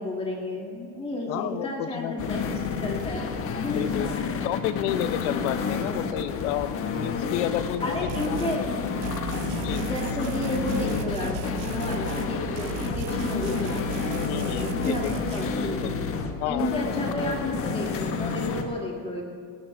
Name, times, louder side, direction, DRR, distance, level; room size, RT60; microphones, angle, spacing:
voice 1, 0.0-3.9 7.8-8.6 9.8-13.8 14.6-15.8 16.4-19.2, left 1 dB, 15° left, -1 dB, 2.2 m, -32 dB
voice 2, 1.3-2.3 3.7-4.1 4.4-8.5 9.6-9.8 14.2-15.2 15.6-15.9 16.4-16.7, left 13 dB, 75° left, 12 dB, 0.7 m, -31 dB
sound 1, 2.2-18.6, left 5 dB, 30° left, 1.3 m, -30 dB
sound 2, 8.1-8.6 9.0-12.3 12.6-15.5, right 7 dB, 85° right, 1.1 m, -36 dB
19.0 x 17.0 x 3.4 m, 2.2 s
cardioid pair, 155°, 45 cm